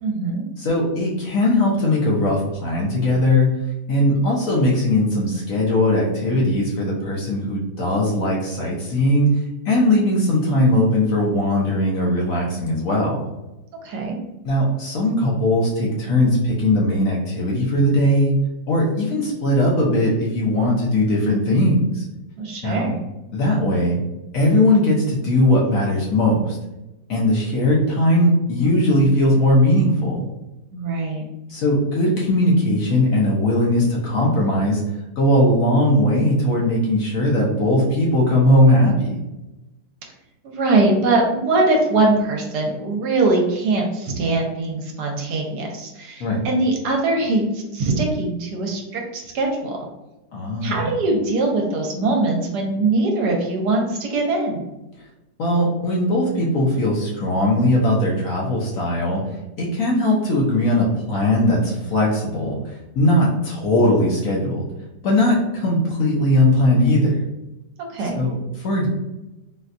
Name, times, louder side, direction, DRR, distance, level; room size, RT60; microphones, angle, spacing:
voice 1, 0.0-0.4 13.8-14.2 22.4-22.9 30.7-31.2 40.4-49.9 50.6-54.6 67.9-68.2, right 2 dB, 70° right, 1 dB, 1.2 m, -22 dB
voice 2, 0.6-3.5 3.9-9.3 9.7-13.2 14.4-18.3 18.7-22.0 22.6-22.9 23.3-24.0 24.3-26.6 27.1-30.2 31.5-34.8 35.2-39.2 46.2-46.4 50.3-50.9 55.4-59.3 59.6-62.6 62.9-64.7 65.0-67.1 68.1-68.9, left 1 dB, 60° left, -3 dB, 1.0 m, -19 dB
4.1 x 2.2 x 2.5 m, 0.99 s
omnidirectional pair, 1.9 m